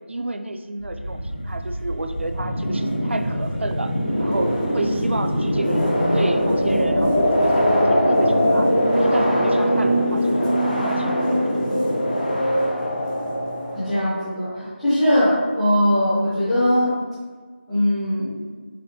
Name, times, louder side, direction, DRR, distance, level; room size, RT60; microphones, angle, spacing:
voice 1, 0.1-10.5 10.8-11.6, right 2 dB, 80° right, 7 dB, 0.4 m, -30 dB
sound 1, 0.8-14.2, equal, 45° left, 1.0 m, -21 dB
voice 2, 13.7-16.9 17.7-18.5, equal, ahead, -16 dB, 0.6 m, -20 dB
4.1 x 3.5 x 2.8 m, 1.5 s
figure-of-eight pair, 170°, 6 cm